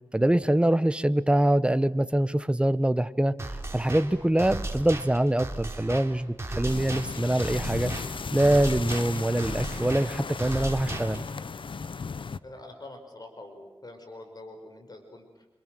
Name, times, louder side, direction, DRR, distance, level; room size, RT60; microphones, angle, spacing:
voice 1, 0.1-7.9 8.3-11.2, right 1 dB, 10° right, 13 dB, 1.2 m, -24 dB
sound 1, 3.4-11.4, right 2 dB, 30° right, 3.6 m, -36 dB
sound 2, 6.7-12.4, left 5 dB, 65° left, 0.9 m, -36 dB
voice 2, 12.4-15.6, left 2 dB, 45° left, 5 dB, 5.3 m, -45 dB
28.5 x 26.0 x 7.8 m, 1.0 s
wide cardioid pair, 70°, 9 cm